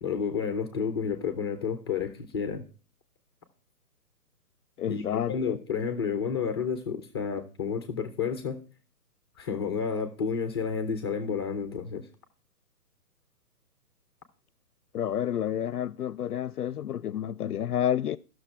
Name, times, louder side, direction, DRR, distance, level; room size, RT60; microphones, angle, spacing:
voice 1, 0.0-2.6 4.9-8.6 9.4-12.1, left 6 dB, 15° left, 0.6 m, -31 dB
voice 2, 4.8-5.6 14.9-18.2, left 10 dB, 70° left, 0.5 m, -30 dB
13.5 x 6.4 x 4.7 m
figure-of-eight pair, 130°, 47 cm